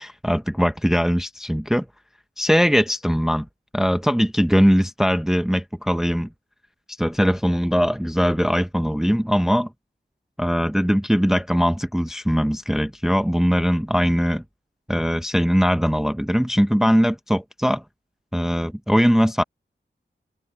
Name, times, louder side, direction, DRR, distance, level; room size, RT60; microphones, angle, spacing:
voice 1, 0.0-1.9 2.4-3.5 3.7-6.3 7.0-9.7 10.4-14.4 14.9-17.8 18.3-19.4, equal, ahead, 0.8 m, -20 dB
open air
wide cardioid pair, 75°, 19 cm